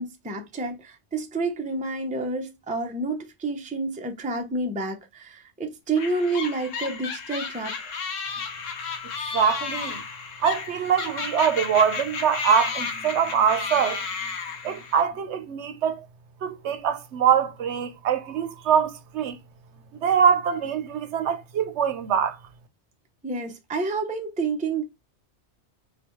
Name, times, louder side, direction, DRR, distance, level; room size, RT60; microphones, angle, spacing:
voice 1, 0.0-7.9 23.2-24.8, right 3 dB, 10° right, 0.4 m, -29 dB
sound 1, 6.0-15.0, left 5 dB, 85° left, 1.2 m, -33 dB
voice 2, 9.3-10.0 10.4-14.0 14.6-16.1 16.4-19.4 20.0-22.4, right 7 dB, 70° right, 0.9 m, -23 dB
4.0 x 3.4 x 3.0 m
omnidirectional pair, 1.3 m